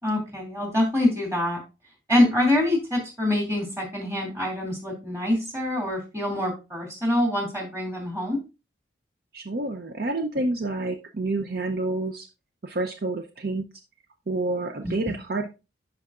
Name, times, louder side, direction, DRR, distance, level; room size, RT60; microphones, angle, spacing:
voice 1, 0.0-1.6 2.1-8.4 14.8-14.9, left 1 dB, 15° right, 0 dB, 2.6 m, -25 dB
voice 2, 9.3-12.3 12.6-13.6 14.3-15.5, right 2 dB, 55° right, 5 dB, 0.6 m, -28 dB
11.0 x 4.7 x 2.5 m, 0.29 s
head